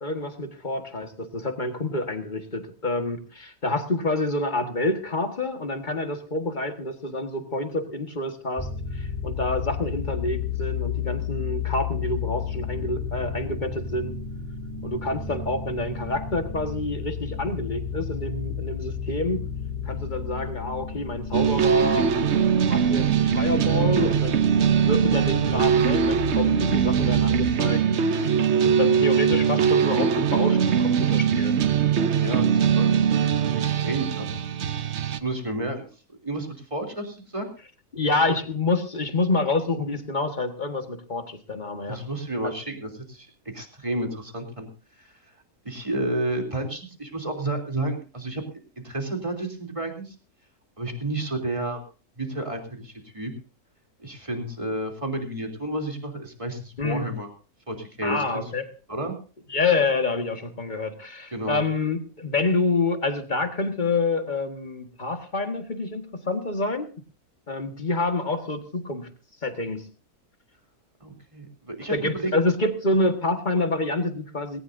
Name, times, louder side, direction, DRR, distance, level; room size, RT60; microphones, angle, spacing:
voice 1, 0.0-14.2 14.8-19.5 19.9-22.1 22.6-31.6 37.9-42.0 42.4-42.5 56.8-57.1 58.0-58.7 59.5-66.9 67.5-69.1 69.4-69.9 71.9-74.6, left 2 dB, 30° left, 6 dB, 1.7 m, -28 dB
sound 1, 8.6-27.5, left 6 dB, 10° left, 2.4 m, -32 dB
sound 2, 21.3-35.2, right 7 dB, 55° right, 1.0 m, -21 dB
voice 2, 32.1-33.0 33.5-34.4 35.1-37.5 41.9-44.7 45.0-45.1 45.6-48.4 48.8-50.1 50.8-51.8 52.2-53.3 54.0-57.3 57.7-58.4 58.9-59.1 61.3-61.6 71.0-72.3, right 1 dB, 20° right, 3 dB, 3.3 m, -31 dB
19.0 x 18.0 x 2.7 m, 0.36 s
omnidirectional pair, 1.6 m